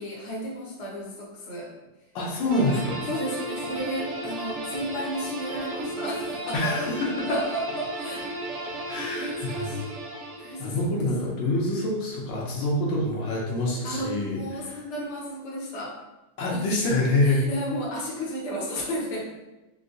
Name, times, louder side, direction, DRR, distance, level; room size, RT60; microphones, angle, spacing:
voice 1, 0.0-1.7 3.1-6.7 7.3-8.3 8.9-10.0 10.4-10.9 13.8-16.0 16.5-16.6 17.2-19.3, equal, 50° left, -4 dB, 0.9 m, -33 dB
voice 2, 2.1-3.1 6.5-7.4 8.9-9.7 10.6-14.6 16.4-17.4, left 2 dB, 80° left, -3 dB, 1.5 m, -26 dB
sound 1, 2.5-10.8, right 1 dB, 90° right, 0.7 m, -34 dB
4.7 x 2.2 x 2.6 m, 1.0 s
omnidirectional pair, 2.1 m